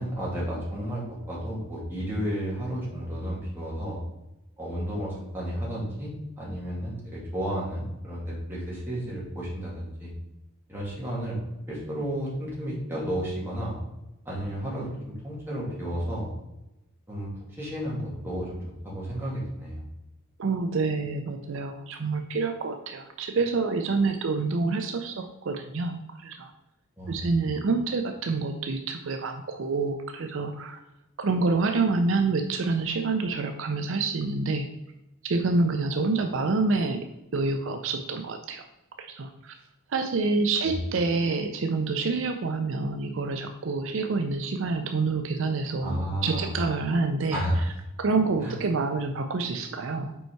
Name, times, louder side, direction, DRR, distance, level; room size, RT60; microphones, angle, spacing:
voice 1, 0.0-4.0 4.6-10.1 10.7-11.4 11.7-13.8 14.3-16.3 17.1-18.6 18.8-19.8 27.0-27.3 40.6-40.7 45.8-46.5 47.3-47.6 48.4-48.5, equal, 10° right, -7 dB, 2.2 m, -32 dB
voice 2, 20.4-26.5 27.1-30.8 31.2-34.7 35.2-37.0 37.3-38.7 39.0-39.6 39.9-47.4 48.0-50.1, right 3 dB, 65° right, 6 dB, 0.5 m, -27 dB
5.3 x 4.6 x 4.5 m, 0.93 s
head